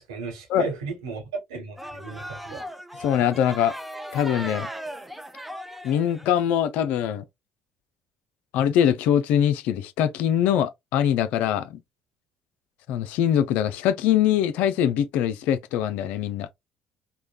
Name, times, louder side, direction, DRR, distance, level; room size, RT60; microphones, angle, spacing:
voice 1, 0.0-2.6, right 4 dB, 85° right, 1.2 m, -34 dB
sound 1, 1.8-6.3, equal, 5° right, 0.5 m, -37 dB
voice 2, 3.0-3.7 4.1-4.7 5.8-7.2 8.5-11.8 12.9-16.5, left 10 dB, 70° left, 0.4 m, -23 dB
3.2 x 2.2 x 2.4 m
hypercardioid pair, 60°, 3 cm